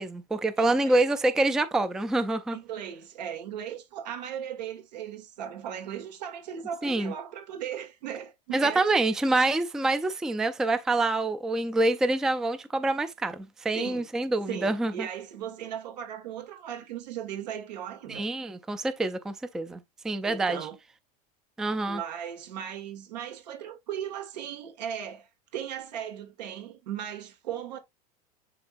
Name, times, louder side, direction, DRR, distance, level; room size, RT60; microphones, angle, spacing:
voice 1, 0.0-2.6 6.8-7.1 8.5-15.1 18.1-20.6 21.6-22.0, right 2 dB, 5° right, 0.3 m, -26 dB
voice 2, 0.6-1.0 2.5-8.8 13.7-14.1 14.5-18.3 20.2-20.8 21.8-27.8, right 9 dB, 90° right, 2.3 m, -37 dB
10.5 x 3.8 x 2.5 m
supercardioid pair, 160°, 21 cm